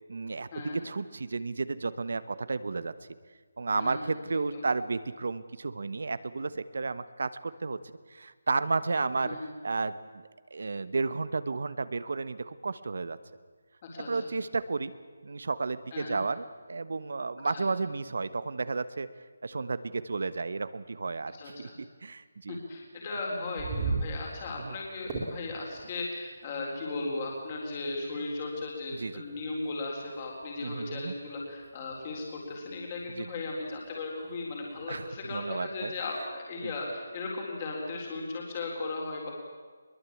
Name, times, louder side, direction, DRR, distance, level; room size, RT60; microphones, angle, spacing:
voice 1, 0.1-2.9 3.6-7.8 8.1-10.2 10.5-13.2 14.0-14.9 15.2-19.1 19.4-22.6 24.6-24.8 28.9-29.1 30.6-31.1 33.2-33.3 34.9-35.9 36.6-36.7, right 4 dB, 60° right, 14 dB, 1.2 m, -32 dB
voice 2, 3.8-4.6 9.2-9.5 13.8-14.3 15.9-16.2 17.5-17.6 21.3-21.7 22.5-39.3, left 3 dB, 25° left, -1 dB, 4.0 m, -37 dB
sound 1, 23.4-35.4, right 4 dB, 20° right, 3.4 m, -42 dB
22.0 x 22.0 x 8.6 m, 1.5 s
hypercardioid pair, 175°, 0 cm